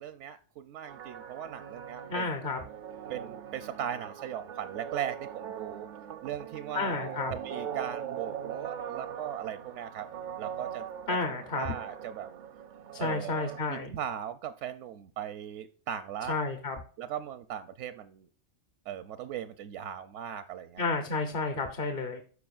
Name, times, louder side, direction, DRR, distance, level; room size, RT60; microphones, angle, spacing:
voice 1, 0.0-2.4 3.1-5.9 6.2-10.1 10.4-10.8 11.3-12.3 13.0-16.3 17.0-18.3 18.9-20.8, right 10 dB, 85° right, 12 dB, 0.9 m, -38 dB
sound 1, 0.9-13.6, right 9 dB, 55° right, 0.5 m, -41 dB
voice 2, 2.1-2.6 6.7-7.3 11.1-11.7 12.9-14.0 16.3-16.8 20.8-22.2, left 3 dB, 50° left, 6 dB, 1.0 m, -31 dB
13.0 x 4.9 x 2.4 m, 0.43 s
omnidirectional pair, 1.2 m